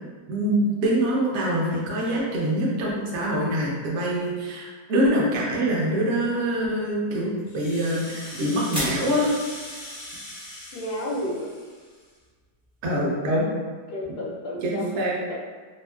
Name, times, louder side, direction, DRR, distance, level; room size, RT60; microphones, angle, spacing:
voice 1, 0.3-9.3 12.8-13.5 14.6-15.1, right 1 dB, 60° right, -4 dB, 0.7 m, -24 dB
sound 1, 7.1-13.0, equal, 5° right, 0.4 m, -40 dB
Rattle (instrument), 7.4-12.2, left 1 dB, 50° left, 0.5 m, -40 dB
voice 2, 10.7-11.5 13.9-15.4, left 1 dB, 75° left, -2 dB, 1.1 m, -32 dB
3.0 x 2.7 x 2.2 m, 1.5 s
omnidirectional pair, 1.9 m